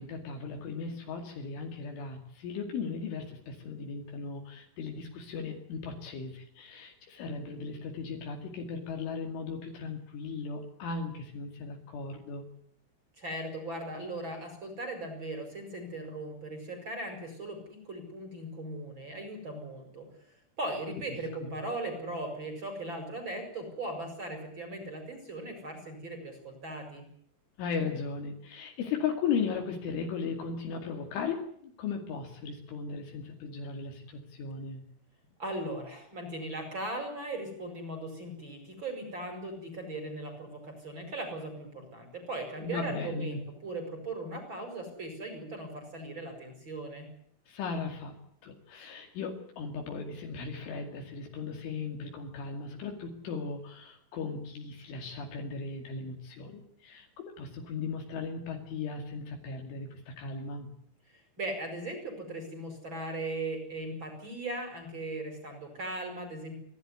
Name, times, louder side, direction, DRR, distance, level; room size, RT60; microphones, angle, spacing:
voice 1, 0.0-12.4 21.4-21.5 27.6-34.8 42.6-43.4 47.5-48.1 48.4-60.7, left 5 dB, 70° left, 2 dB, 4.8 m, -37 dB
voice 2, 13.2-20.1 20.6-27.1 35.4-47.1 61.4-66.6, right 1 dB, 25° right, 5 dB, 5.5 m, -38 dB
29.5 x 12.0 x 9.6 m, 0.65 s
omnidirectional pair, 5.8 m